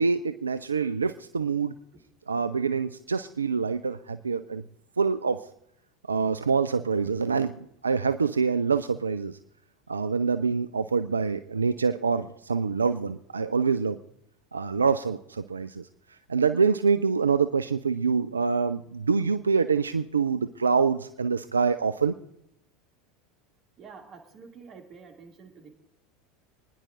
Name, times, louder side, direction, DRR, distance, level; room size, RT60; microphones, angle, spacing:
voice 1, 0.0-1.7 2.3-4.6 5.0-5.5 6.1-9.4 9.9-14.0 14.5-15.9 16.3-22.2, right 5 dB, 85° right, 13 dB, 0.4 m, -26 dB
voice 2, 23.8-25.7, right 5 dB, 40° right, 2 dB, 2.3 m, -48 dB
28.0 x 10.5 x 2.5 m, 0.77 s
figure-of-eight pair, 80°, 0 cm